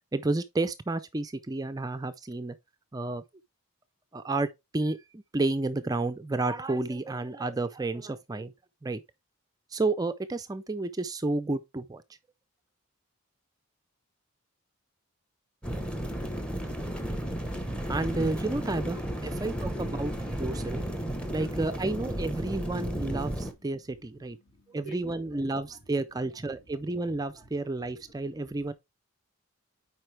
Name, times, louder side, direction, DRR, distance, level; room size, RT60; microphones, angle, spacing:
voice 1, 0.1-2.6 2.9-3.2 4.1-4.5 4.7-8.5 8.8-9.0 9.7-12.0 17.9-20.8 21.3-24.4 24.7-28.7, right 2 dB, 15° right, 0.4 m, -31 dB
sound 1, 15.6-23.5, right 1 dB, 5° left, 0.9 m, -33 dB
voice 2, 20.6-21.6 23.9-25.0 28.0-28.2, equal, 50° left, 2.2 m, -49 dB
7.7 x 4.9 x 3.3 m
head